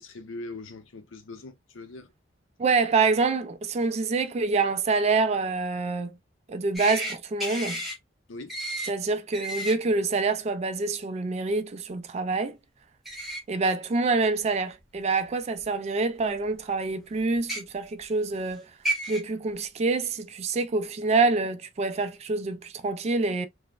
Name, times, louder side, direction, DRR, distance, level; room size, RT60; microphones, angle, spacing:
voice 1, 0.0-2.1 8.3-8.5, left 2 dB, 85° left, 0.6 m, -41 dB
voice 2, 2.6-6.2 6.5-7.8 8.9-12.6 13.5-18.6 19.1-23.5, right 3 dB, 35° right, 0.3 m, -26 dB
sound 1, 6.7-7.1 7.4-7.9 8.5-8.9 9.3-9.7 13.0-13.4 14.2-14.3 15.6-15.7 17.3-17.6 18.5-18.6 18.8-19.2, right 1 dB, ahead, 0.8 m, -31 dB
3.1 x 2.0 x 2.3 m
head